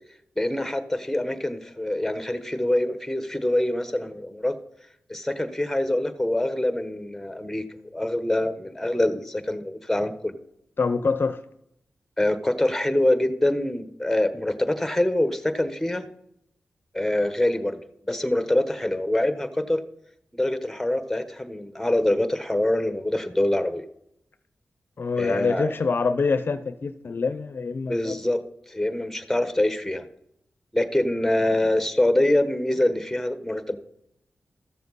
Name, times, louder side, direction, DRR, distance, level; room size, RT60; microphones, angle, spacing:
voice 1, 0.4-4.5 5.1-7.6 7.9-10.4 12.2-16.1 16.9-17.8 18.1-19.8 20.3-23.8 25.2-25.7 27.9-28.4 28.7-30.1 30.7-33.8, left 1 dB, 5° left, 1.2 m, -25 dB
voice 2, 10.8-11.4 25.0-28.2, left 4 dB, 60° left, 0.6 m, -25 dB
14.0 x 6.9 x 4.1 m
cardioid pair, 50°, 4 cm